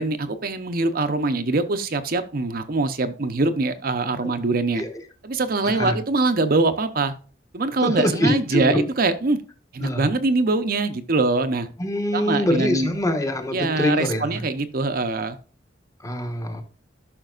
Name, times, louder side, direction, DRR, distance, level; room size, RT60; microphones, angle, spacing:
voice 1, 0.0-4.8 5.2-7.1 7.5-9.4 9.7-11.7 12.1-12.9 13.5-15.4, right 3 dB, 50° right, 9 dB, 0.7 m, -23 dB
voice 2, 5.6-6.0 7.8-8.8 9.8-10.1 11.8-14.4 16.0-16.6, left 1 dB, 20° left, 5 dB, 1.2 m, -24 dB
13.5 x 5.9 x 2.4 m, 0.39 s
head